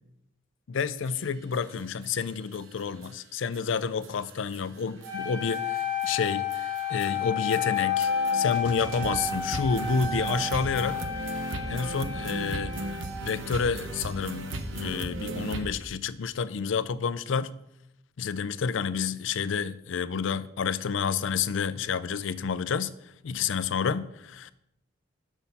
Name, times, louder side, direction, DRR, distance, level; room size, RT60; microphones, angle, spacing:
voice 1, 0.7-11.0 11.7-12.8 13.2-17.5 18.2-22.9 23.2-24.5, left 6 dB, 75° left, 0.4 m, -29 dB
sound 1, 1.1-1.2 1.5-1.6 2.0-2.1 2.5-2.6 3.0-3.1 3.5-3.6 4.0-15.7, right 2 dB, 75° right, 0.9 m, -37 dB
Wind instrument woodwind instrument, 5.0-13.3, left 6 dB, 55° right, 3.7 m, -31 dB
7.0 x 6.4 x 5.3 m
head